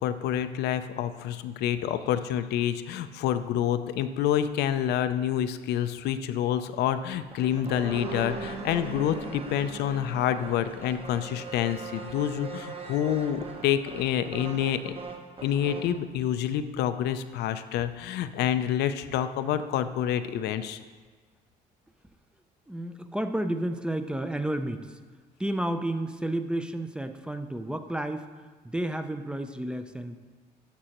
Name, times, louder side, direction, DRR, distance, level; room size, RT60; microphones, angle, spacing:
voice 1, 0.0-14.9 15.4-20.8, left 10 dB, 75° left, 11 dB, 0.5 m, -28 dB
sound 1, 7.1-16.0, right 4 dB, 35° right, 1.0 m, -40 dB
voice 2, 22.7-25.0 25.4-28.3 28.6-30.1, right 1 dB, 5° right, 8 dB, 0.4 m, -31 dB
11.5 x 6.0 x 3.0 m, 1.4 s
cardioid pair, 110°, 17 cm